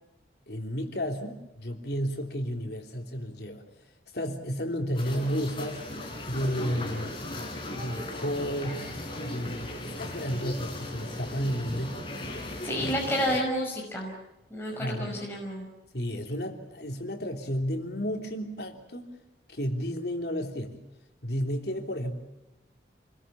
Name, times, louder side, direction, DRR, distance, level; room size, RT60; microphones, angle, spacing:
voice 1, 0.5-3.6 4.1-5.8 6.2-7.1 7.7-8.9 9.2-12.0 12.7-12.9 14.8-15.1 15.9-19.1 19.5-20.8 21.2-22.1, equal, 65° left, 3 dB, 3.3 m, -32 dB
sound 1, 4.9-13.4, left 1 dB, 30° left, 4.1 m, -37 dB
voice 2, 12.6-14.1 14.5-15.7, equal, 15° left, -2 dB, 5.5 m, -30 dB
28.5 x 21.5 x 7.2 m, 0.97 s
head